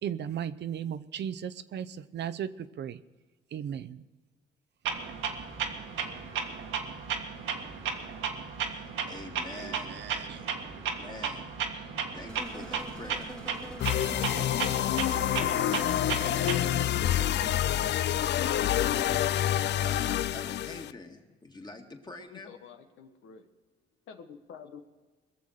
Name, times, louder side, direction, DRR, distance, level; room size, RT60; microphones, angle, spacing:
voice 1, 0.0-3.0 3.5-4.0 9.5-10.4 14.3-14.4, right 9 dB, 60° right, 13 dB, 0.7 m, -36 dB
Clock, 4.8-16.8, right 6 dB, 85° right, 1.7 m, -35 dB
voice 2, 8.7-11.5 11.8-13.4 14.5-17.0 19.8-22.6, left 2 dB, 20° left, 3 dB, 2.0 m, -47 dB
sound 1, 12.3-17.6, left 1 dB, 5° left, 1.5 m, -44 dB
sound 2, 13.8-20.9, left 12 dB, 60° left, 0.4 m, -27 dB
voice 3, 22.3-23.5 24.1-24.8, left 6 dB, 80° left, 6 dB, 1.3 m, -48 dB
21.5 x 7.2 x 6.5 m, 1.3 s
cardioid pair, 90°, 20 cm